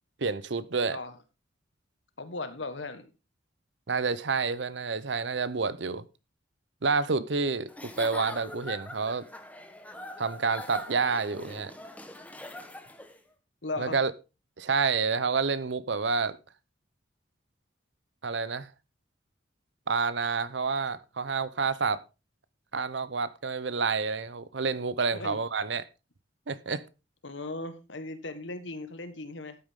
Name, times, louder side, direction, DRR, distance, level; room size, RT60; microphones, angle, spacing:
voice 1, 0.2-1.0 3.9-6.0 6.8-9.2 10.2-11.7 13.8-14.1 14.6-16.4 18.2-18.7 19.9-22.0 22.7-25.8 26.5-26.8, right 4 dB, 70° right, 0.8 m, -29 dB
voice 2, 2.2-3.1 13.6-14.0 25.1-25.4 27.2-29.6, left 2 dB, 80° left, 1.5 m, -37 dB
Giggle / Chuckle chortle, 7.7-13.2, left 1 dB, 10° left, 1.2 m, -42 dB
12.5 x 8.6 x 3.7 m
head